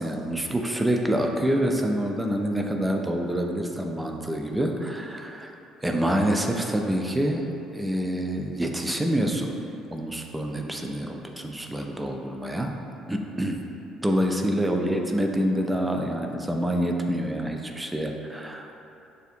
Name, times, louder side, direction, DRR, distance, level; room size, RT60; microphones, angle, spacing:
voice 1, 0.0-5.6 5.8-9.5 9.9-12.7 13.1-13.6 14.0-18.8, equal, 10° right, 2 dB, 0.4 m, -27 dB
6.4 x 2.6 x 2.5 m, 2.9 s
figure-of-eight pair, 50°, 0 cm